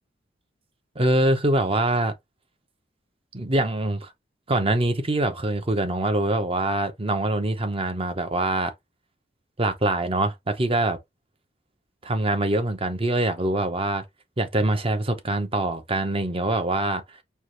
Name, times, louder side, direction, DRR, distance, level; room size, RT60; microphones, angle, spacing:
voice 1, 1.0-2.1 3.3-4.1 4.5-8.7 9.6-11.0 12.0-14.0 14.4-17.0, right 2 dB, 30° right, 0.8 m, -24 dB
4.6 x 2.4 x 3.3 m
head